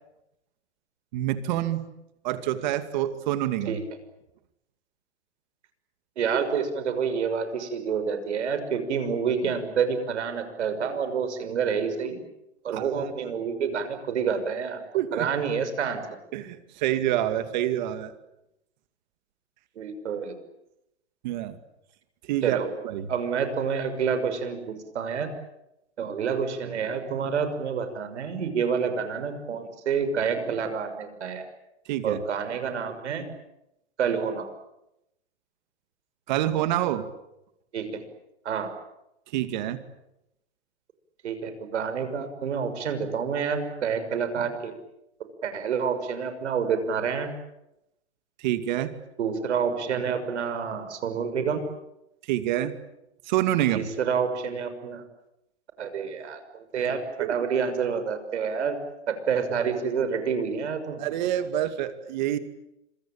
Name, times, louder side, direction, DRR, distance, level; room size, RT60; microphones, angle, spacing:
voice 1, 1.1-1.8 2.2-3.8 12.7-13.1 14.9-15.3 16.3-18.1 21.2-21.6 22.3-23.1 31.9-32.2 36.3-37.1 39.3-39.8 48.4-48.9 52.3-52.8 53.3-53.9 57.2-57.3 61.0-62.4, right 12 dB, 40° right, 10 dB, 2.4 m, -27 dB
voice 2, 6.2-12.2 12.6-14.8 15.1-16.0 19.8-20.3 22.4-22.7 23.1-25.3 26.0-31.4 32.0-33.2 34.0-34.5 37.7-38.0 38.4-38.7 41.2-44.7 45.4-47.3 49.2-51.6 53.7-55.0 55.8-58.8 59.1-61.0, right 6 dB, 75° right, 9 dB, 6.2 m, -28 dB
26.5 x 24.5 x 8.9 m, 0.88 s
hypercardioid pair, 160°, 35 cm